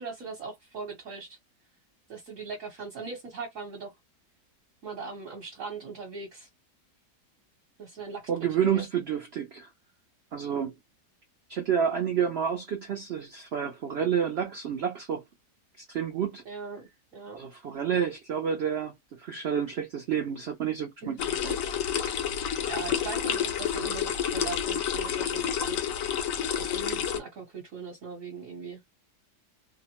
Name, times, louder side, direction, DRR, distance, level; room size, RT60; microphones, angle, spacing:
voice 1, 0.0-1.4 2.1-3.9 4.8-6.5 7.8-8.2 8.6-8.8 16.4-17.5 21.0-21.6 22.1-22.2 22.6-25.9 26.5-28.8, right 4 dB, 60° right, 1.1 m, -40 dB
voice 2, 8.3-9.7 10.3-10.7 11.5-15.2 15.8-16.4 17.3-21.2, right 8 dB, 75° right, 0.5 m, -29 dB
sound 1, 21.2-27.2, left 9 dB, 70° left, 0.8 m, -29 dB
2.8 x 2.0 x 2.9 m
omnidirectional pair, 1.8 m